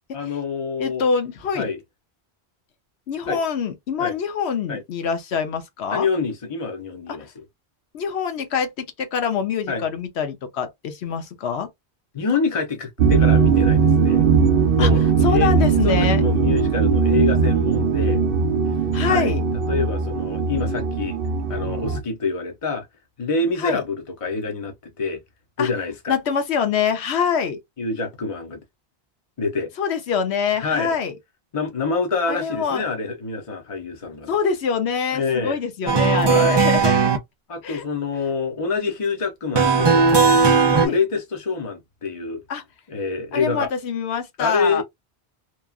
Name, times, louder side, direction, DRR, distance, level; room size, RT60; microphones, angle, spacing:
voice 1, 0.1-1.0 1.5-1.8 3.3-3.4 4.0-4.1 4.7-4.8 5.9-7.3 9.7-9.8 12.1-14.3 14.8-15.0 15.3-15.5 15.8-18.2 19.1-19.3 19.7-21.2 21.5-22.9 23.2-25.2 25.6-26.1 27.8-28.6 29.4-29.7 30.6-31.0 31.5-34.3 35.1-35.6 36.3-36.6 37.5-40.1 40.5-42.4 42.9-43.7 44.4-44.8, left 4 dB, 35° left, 0.8 m, -26 dB
voice 2, 0.8-1.7 3.1-6.1 7.9-11.7 14.8-14.9 15.2-16.2 18.9-19.4 23.6-23.8 25.6-25.7 26.1-27.6 29.8-31.1 32.3-32.8 34.3-37.0 37.6-37.8 40.8-41.0 42.5-42.6 43.3-44.8, left 6 dB, 85° left, 1.0 m, -25 dB
sound 1, 13.0-22.0, right 5 dB, 65° right, 0.7 m, -19 dB
sound 2, 35.9-37.2 39.5-40.9, right 5 dB, 40° right, 0.4 m, -16 dB
2.9 x 2.3 x 2.3 m
omnidirectional pair, 1.1 m